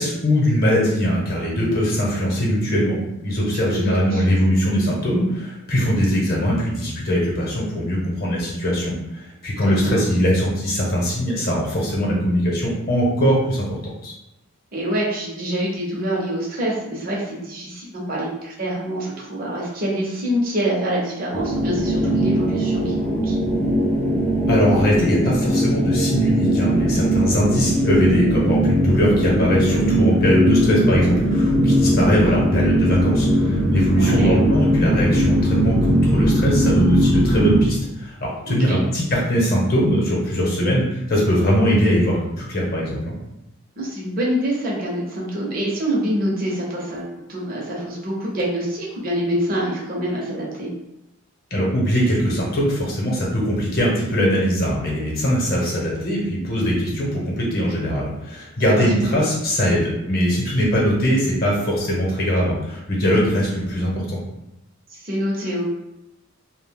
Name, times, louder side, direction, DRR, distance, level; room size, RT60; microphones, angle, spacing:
voice 1, 0.0-13.6 14.0-14.1 24.5-43.1 51.5-64.2, equal, 45° left, -3 dB, 0.8 m, -21 dB
voice 2, 3.7-4.2 9.6-10.0 14.7-23.4 33.9-34.3 38.5-38.8 43.8-50.7 58.6-59.2 64.9-65.7, equal, 40° right, -4 dB, 0.6 m, -26 dB
sound 1, 21.3-37.6, equal, 5° left, 0.3 m, -19 dB
2.4 x 2.1 x 3.4 m, 0.92 s
head